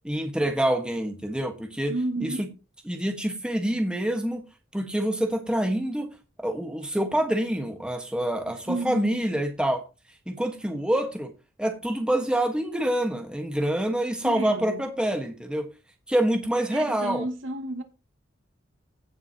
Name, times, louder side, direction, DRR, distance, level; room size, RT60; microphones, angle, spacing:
voice 1, 0.0-1.9 2.2-2.5 2.9-4.4 4.7-6.1 6.4-9.8 10.3-11.3 11.6-15.7 16.1-17.3, right 1 dB, 5° right, 1.4 m, -26 dB
voice 2, 1.9-2.5 8.5-9.2 14.2-14.9 16.7-17.8, right 2 dB, 70° right, 2.3 m, -32 dB
17.0 x 7.2 x 2.9 m
head